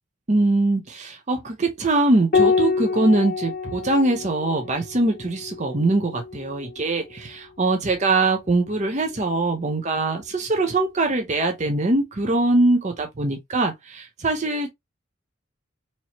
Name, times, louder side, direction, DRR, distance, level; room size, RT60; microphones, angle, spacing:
voice 1, 0.3-14.7, right 2 dB, 35° right, 0.7 m, -22 dB
Piano, 2.3-7.2 8.8-9.6, left 4 dB, 45° left, 0.8 m, -27 dB
4.3 x 3.0 x 2.9 m
head